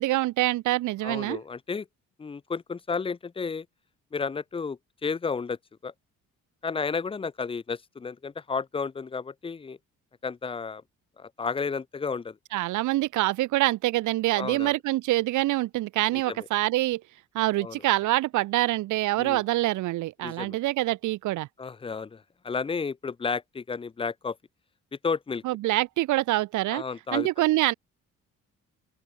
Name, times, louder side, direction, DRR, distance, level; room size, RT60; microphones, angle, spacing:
voice 1, 0.0-1.4 12.5-17.0 17.3-21.5 25.4-26.8 27.1-27.7, right 17 dB, 75° right, 0.6 m, -25 dB
voice 2, 1.0-1.9 2.2-3.7 4.1-5.9 6.6-9.8 10.2-10.8 11.2-12.4 14.3-14.8 16.1-16.5 17.5-17.8 19.2-19.4 20.2-20.6 21.6-24.4 25.0-25.4 26.7-27.3, left 5 dB, 20° left, 0.5 m, -32 dB
open air
cardioid pair, 90°, 30 cm